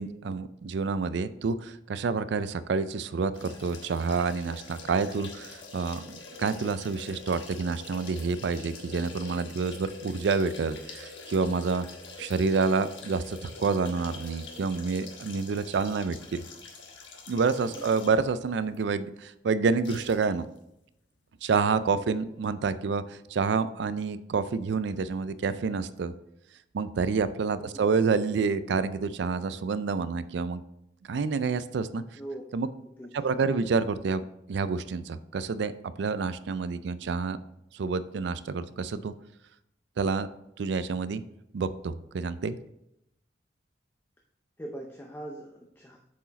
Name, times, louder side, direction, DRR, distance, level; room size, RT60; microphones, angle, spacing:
voice 1, 0.0-11.9 12.2-16.4 17.3-20.5 21.4-26.1 26.7-30.6 31.1-32.0 32.5-32.7 33.1-37.4 37.7-39.1 40.0-40.3 40.6-41.2 41.5-42.6, right 4 dB, 70° right, 14 dB, 0.4 m, -28 dB
sound 1, 3.3-18.3 18.7-18.8 19.8-20.3 20.5-20.6, left 3 dB, 75° left, 1.2 m, -45 dB
voice 2, 17.7-18.0 21.9-22.2 27.5-27.9 32.1-32.4 33.0-33.4 44.6-46.0, right 1 dB, 10° left, 0 dB, 0.5 m, -42 dB
7.2 x 4.7 x 4.0 m, 0.83 s
head